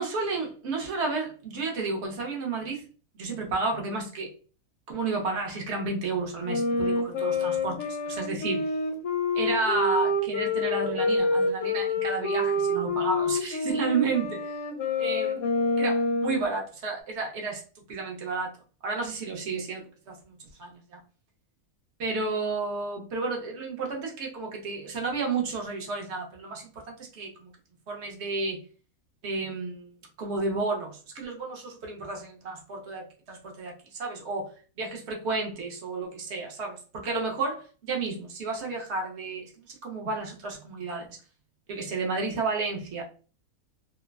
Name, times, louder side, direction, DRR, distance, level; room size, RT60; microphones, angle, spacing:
voice 1, 0.0-2.8 3.1-4.3 4.9-8.7 9.3-14.6 15.0-17.6 17.9-18.5 18.8-21.0 22.0-27.5 27.9-28.6 29.2-29.9 30.2-34.5 34.8-41.2 41.7-43.0, right 3 dB, 60° right, 1 dB, 0.9 m, -32 dB
Wind instrument woodwind instrument, 6.4-16.5, left 2 dB, 65° left, 0.8 m, -27 dB
3.1 x 2.0 x 2.3 m, 0.38 s
omnidirectional pair, 1.6 m